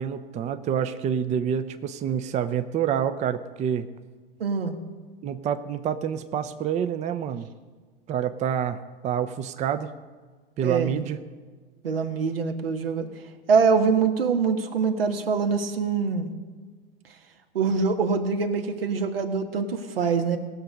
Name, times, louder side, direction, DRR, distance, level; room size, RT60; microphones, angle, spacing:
voice 1, 0.0-3.9 5.2-7.5 8.1-8.8 9.0-9.9 10.6-11.2, right 8 dB, 25° right, 10 dB, 0.6 m, -27 dB
voice 2, 4.4-4.8 10.6-11.0 11.8-13.1 13.5-16.3 17.5-20.4, right 5 dB, 80° right, 6 dB, 1.4 m, -24 dB
19.0 x 6.6 x 5.2 m, 1.4 s
hypercardioid pair, 100°, 29 cm